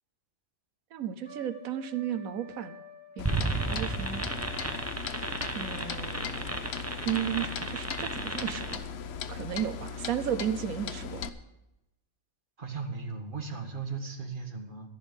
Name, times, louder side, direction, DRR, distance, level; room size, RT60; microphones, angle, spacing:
voice 1, 0.9-2.8 3.2-4.3 5.5-8.9 9.3-11.3, right 9 dB, 85° right, 11 dB, 1.3 m, -34 dB
Trumpet, 1.2-6.3, left 3 dB, 5° left, 2.3 m, -50 dB
Clock, 3.2-11.3, left 7 dB, 55° left, 0.8 m, -38 dB
sound 1, 3.3-8.8, right 2 dB, 15° right, 0.7 m, -33 dB
voice 2, 12.6-15.0, right 4 dB, 40° right, 3 dB, 1.8 m, -37 dB
13.0 x 11.0 x 5.3 m, 0.92 s
omnidirectional pair, 1.4 m